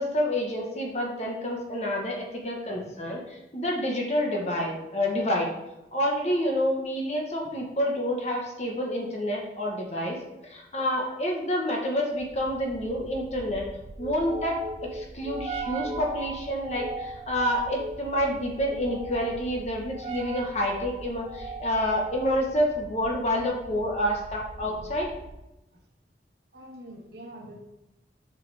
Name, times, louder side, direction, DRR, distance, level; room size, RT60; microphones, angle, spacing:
voice 1, 0.0-5.5 5.9-10.2 10.4-13.6 14.0-14.5 14.9-25.1, equal, 35° left, -1 dB, 1.1 m, -28 dB
sound 1, 12.2-25.5, right 2 dB, 30° right, 0.3 m, -39 dB
voice 2, 26.5-27.6, right 1 dB, 65° right, -1 dB, 1.4 m, -45 dB
6.9 x 4.8 x 3.4 m, 0.94 s
head